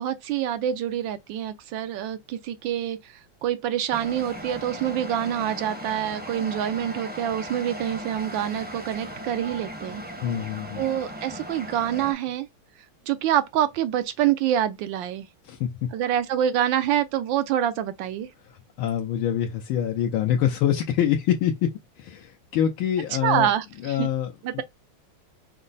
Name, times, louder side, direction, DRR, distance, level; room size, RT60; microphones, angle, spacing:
voice 1, 0.0-3.1 3.4-10.0 10.8-12.5 13.1-15.3 15.9-18.3 23.2-24.1 24.4-24.6, right 10 dB, 75° right, 1.2 m, -26 dB
sound 1, 3.9-12.1, equal, 10° right, 0.6 m, -38 dB
voice 2, 10.2-10.8 15.4-15.9 18.5-23.5 23.8-24.6, left 10 dB, 80° left, 1.5 m, -25 dB
5.3 x 2.0 x 3.9 m
omnidirectional pair, 2.3 m